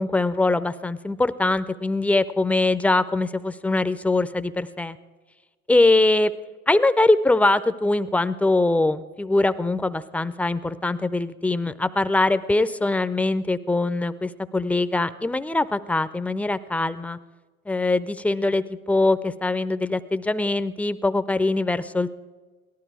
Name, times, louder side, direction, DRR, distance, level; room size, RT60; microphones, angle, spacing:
voice 1, 0.0-5.0 5.7-6.3 6.7-17.2 17.7-22.1, left 2 dB, 5° left, 14 dB, 0.4 m, -22 dB
18.0 x 12.5 x 4.7 m, 1.3 s
hypercardioid pair, 75°, 41 cm